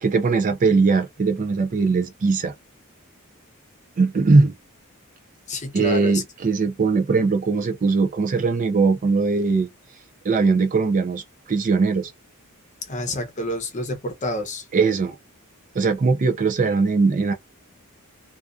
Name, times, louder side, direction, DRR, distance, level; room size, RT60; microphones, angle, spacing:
voice 1, 0.0-2.5 4.0-4.5 5.7-9.7 10.2-12.1 14.7-15.2 15.7-17.3, right 4 dB, 35° right, 0.4 m, -20 dB
voice 2, 5.5-6.2 12.9-14.6, left 1 dB, 35° left, 0.7 m, -28 dB
2.5 x 2.4 x 2.3 m
head